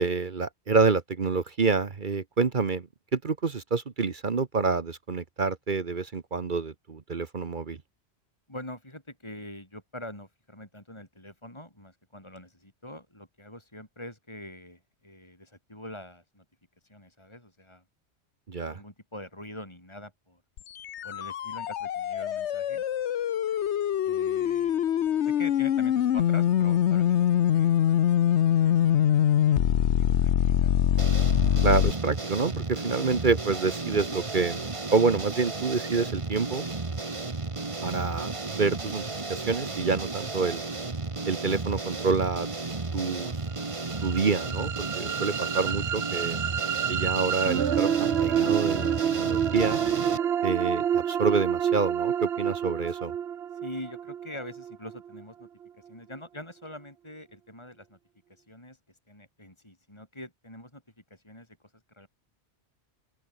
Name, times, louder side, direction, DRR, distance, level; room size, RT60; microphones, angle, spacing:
voice 1, 0.0-7.8 18.5-18.8 31.6-36.7 37.8-39.0 39.3-40.6 41.3-42.5 42.9-43.3 44.0-46.4 46.9-49.8 50.4-53.1, right 4 dB, 50° right, 1.3 m, -27 dB
voice 2, 8.5-16.4 16.8-17.8 18.7-20.4 21.0-22.8 24.0-24.8 25.2-27.7 28.4-28.8 29.0-29.2 29.7-30.8 53.5-55.5 55.8-58.0 58.3-60.8 61.1-61.6 61.9-62.1, left 1 dB, 25° left, 5.4 m, -44 dB
sound 1, 20.6-31.9, left 10 dB, 85° left, 1.1 m, -24 dB
sound 2, 31.0-50.2, right 3 dB, 30° right, 1.4 m, -34 dB
sound 3, 43.6-55.7, right 9 dB, 70° right, 1.1 m, -28 dB
open air
omnidirectional pair, 1.1 m